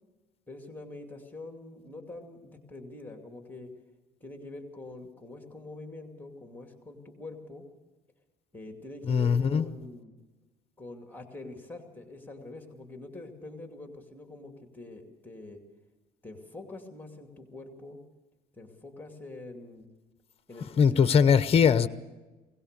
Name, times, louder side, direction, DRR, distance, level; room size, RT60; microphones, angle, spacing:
voice 1, 0.5-3.7 4.2-7.6 8.5-10.1 10.8-15.6 16.2-18.0 18.5-19.9 20.5-21.3, left 2 dB, 10° left, 4 dB, 2.5 m, -45 dB
voice 2, 9.1-9.7 20.8-21.9, left 7 dB, 35° left, 13 dB, 0.8 m, -21 dB
21.5 x 18.0 x 6.7 m, 1.2 s
cardioid pair, 110°, 17 cm